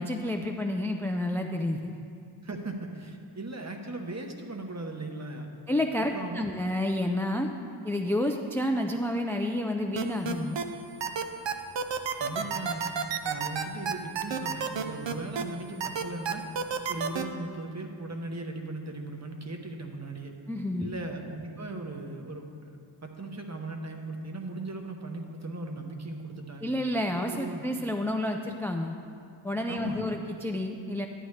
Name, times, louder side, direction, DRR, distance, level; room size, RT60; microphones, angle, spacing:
voice 1, 0.0-2.0 5.7-7.5 7.8-10.6 20.5-20.9 26.6-29.0 29.4-31.1, left 1 dB, 5° left, 3 dB, 0.3 m, -29 dB
voice 2, 2.4-5.5 6.0-6.4 12.2-12.9 13.2-16.4 16.9-20.3 20.8-22.7 23.0-26.7 27.3-27.6 29.7-30.0, right 2 dB, 35° right, 3 dB, 0.9 m, -38 dB
sound 1, 10.0-10.6 11.0-15.4 15.8-17.2, right 6 dB, 65° right, 0.6 m, -30 dB
11.0 x 9.1 x 3.2 m, 2.5 s
wide cardioid pair, 90°, 48 cm